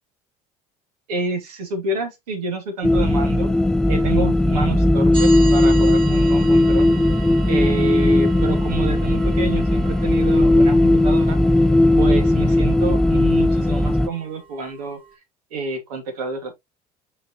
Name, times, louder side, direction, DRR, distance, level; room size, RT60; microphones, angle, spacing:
voice 1, 1.1-3.5 3.9-6.9 7.5-11.4 12.0-15.0 15.5-16.6, right 3 dB, 80° right, 2.5 m, -29 dB
sound 1, 2.8-14.1, left 1 dB, 5° left, 0.4 m, -17 dB
sound 2, 5.1-15.1, right 6 dB, 25° right, 3.1 m, -39 dB
6.4 x 5.7 x 2.9 m
hypercardioid pair, 65°, 19 cm